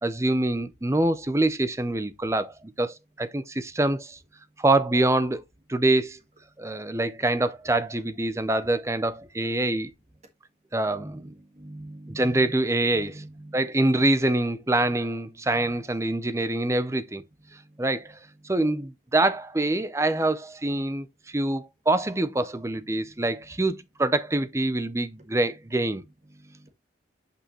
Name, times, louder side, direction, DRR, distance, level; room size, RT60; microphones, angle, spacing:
voice 1, 0.0-4.2 4.6-5.4 5.7-6.2 6.6-9.9 10.7-11.2 12.1-13.2 13.5-17.2 17.8-18.2 18.4-26.0, right 2 dB, 15° right, 0.6 m, -25 dB
voice 2, 10.8-12.6 12.9-13.7 22.7-22.8 23.6-23.7 26.2-26.7, right 1 dB, 40° right, 1.4 m, -44 dB
8.6 x 5.5 x 3.0 m
head